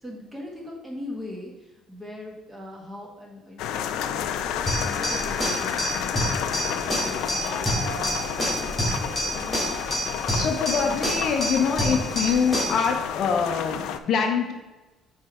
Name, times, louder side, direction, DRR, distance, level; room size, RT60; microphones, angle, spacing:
voice 1, 0.0-6.1 6.7-8.6, left 1 dB, 10° right, -1 dB, 1.4 m, -40 dB
sound 1, 3.6-14.0, left 9 dB, 80° left, 0.4 m, -31 dB
sound 2, 4.2-12.5, right 3 dB, 50° right, 1.3 m, -40 dB
sound 3, 4.7-12.9, right 1 dB, 10° left, 2.4 m, -28 dB
voice 2, 10.3-14.5, left 6 dB, 50° left, 4 dB, 0.7 m, -24 dB
8.7 x 3.3 x 4.9 m, 1.1 s
cardioid pair, 160°, 0 cm